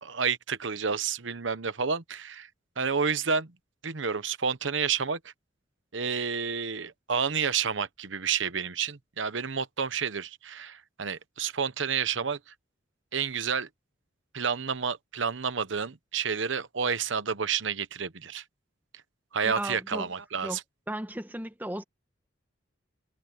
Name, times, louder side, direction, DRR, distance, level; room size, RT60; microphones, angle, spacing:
voice 1, 0.0-2.5 2.8-3.5 3.8-5.3 5.9-12.5 13.1-13.7 14.3-18.4 19.3-20.6, right 6 dB, 75° right, 1.0 m, -30 dB
voice 2, 19.4-20.1 20.4-20.6 20.9-21.8, right 1 dB, 10° right, 1.4 m, -35 dB
head